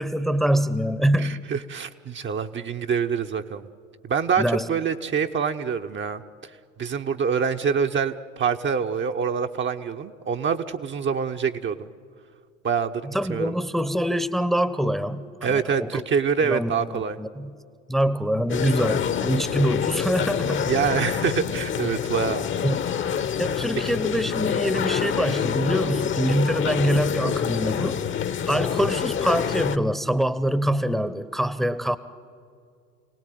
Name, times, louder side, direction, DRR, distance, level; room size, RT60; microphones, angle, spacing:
voice 1, 0.0-1.4 4.4-4.7 13.0-16.0 16.4-17.5 17.9-20.7 22.6-23.0 23.4-28.0 28.5-32.0, equal, ahead, 15 dB, 1.0 m, -25 dB
voice 2, 1.2-3.7 4.0-6.5 6.8-11.9 12.6-13.6 15.4-17.2 20.7-22.5, right 6 dB, 30° right, 5 dB, 1.0 m, -26 dB
sound 1, 18.5-29.8, left 8 dB, 30° left, 1.1 m, -26 dB
28.0 x 18.5 x 9.4 m, 2.3 s
figure-of-eight pair, 70°, 39 cm